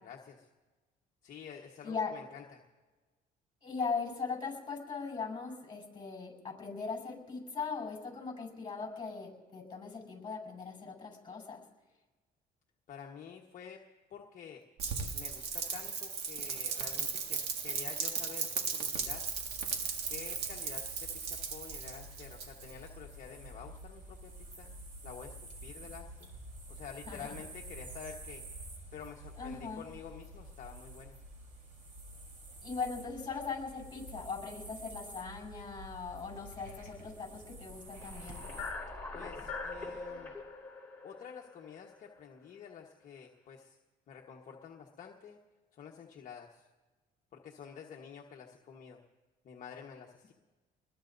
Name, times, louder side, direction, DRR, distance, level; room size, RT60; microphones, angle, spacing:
voice 1, 0.0-0.5 1.2-2.6 12.9-13.8 14.1-14.6 15.1-19.3 20.1-24.7 25.0-25.4 25.6-26.3 26.7-28.4 28.9-31.2 39.1-40.3 41.0-43.8 44.1-45.4 45.7-46.7 47.3-49.0 49.4-50.3, left 7 dB, 50° left, 0 dB, 1.3 m, -49 dB
voice 2, 3.6-11.6 27.1-27.3 29.4-29.8 32.6-38.4, left 5 dB, 25° left, -1 dB, 5.6 m, -39 dB
Rain, 14.8-22.9, right 6 dB, 75° right, 1.9 m, -37 dB
sound 1, 18.9-38.7, right 2 dB, 50° right, 4.3 m, -49 dB
sound 2, 37.8-42.1, left 3 dB, 10° left, 4.5 m, -43 dB
26.0 x 21.0 x 2.7 m, 1.2 s
cardioid pair, 110°, 17 cm